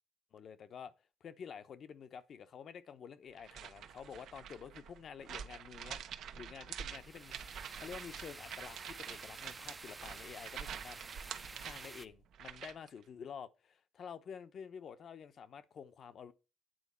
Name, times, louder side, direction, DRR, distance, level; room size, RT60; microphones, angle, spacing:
voice 1, 0.3-0.9 1.2-6.0 6.3-11.0 11.6-16.3, left 7 dB, 60° left, 0.9 m, -49 dB
sound 1, 3.4-12.9, right 8 dB, 75° right, 0.9 m, -47 dB
sound 2, 6.9-12.1, right 3 dB, 25° right, 0.6 m, -50 dB
9.0 x 4.0 x 7.0 m
cardioid pair, 90°, 0 cm